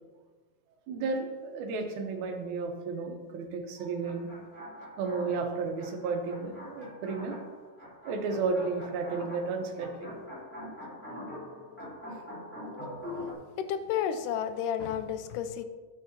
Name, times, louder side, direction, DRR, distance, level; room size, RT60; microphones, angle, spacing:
voice 1, 0.9-4.3 5.0-7.4 8.1-10.1, right 4 dB, 65° right, 3 dB, 2.2 m, -33 dB
sound 1, 4.0-13.3, left 1 dB, 5° left, 2.8 m, -44 dB
voice 2, 13.6-15.6, left 9 dB, 80° left, 10 dB, 2.0 m, -31 dB
12.0 x 8.6 x 2.8 m, 1.3 s
omnidirectional pair, 4.0 m